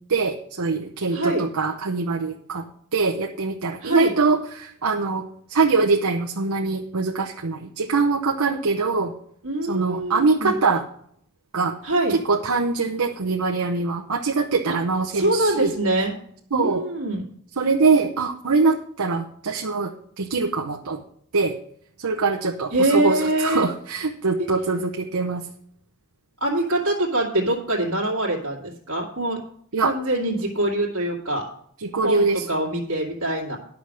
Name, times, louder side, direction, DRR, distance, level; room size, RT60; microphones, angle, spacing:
voice 1, 0.1-2.6 2.9-9.1 9.6-10.8 11.5-11.8 12.1-15.7 16.5-16.8 17.6-21.0 21.3-21.6 22.0-25.5 29.7-29.9 31.8-32.5, right 4 dB, 85° right, 3 dB, 0.9 m, -23 dB
voice 2, 1.1-1.4 3.8-4.1 9.4-10.6 11.8-12.1 15.1-16.1 16.5-17.3 22.7-23.7 26.4-29.4 29.8-31.4 32.0-33.6, right 1 dB, 70° right, -3 dB, 2.2 m, -24 dB
10.5 x 6.0 x 6.3 m, 0.65 s
head